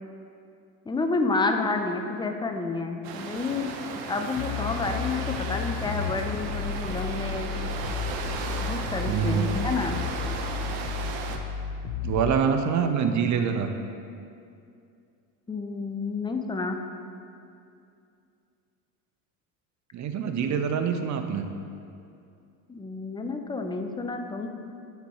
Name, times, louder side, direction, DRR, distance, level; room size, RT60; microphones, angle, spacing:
voice 1, 0.9-3.7 4.1-7.5 8.6-10.0 15.5-16.8 22.7-24.5, left 3 dB, 10° left, 4 dB, 0.4 m, -29 dB
sound 1, 3.0-11.4, right 5 dB, 60° right, 0.9 m, -35 dB
sound 2, 4.3-12.3, left 7 dB, 65° left, 0.6 m, -33 dB
voice 2, 9.1-9.6 12.0-13.7 19.9-21.5, right 6 dB, 35° right, 7 dB, 0.6 m, -25 dB
9.2 x 4.1 x 4.8 m, 2.5 s
supercardioid pair, 90°, 49 cm